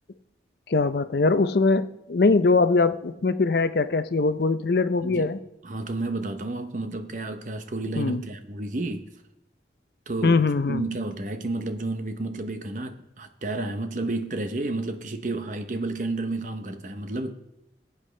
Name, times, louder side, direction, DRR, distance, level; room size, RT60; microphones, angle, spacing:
voice 1, 0.7-5.4 8.0-8.2 10.2-10.8, left 3 dB, 60° left, 0.5 m, -22 dB
voice 2, 5.0-5.3 5.6-9.1 10.1-17.3, right 2 dB, 45° right, 0.8 m, -31 dB
20.5 x 8.3 x 3.3 m
head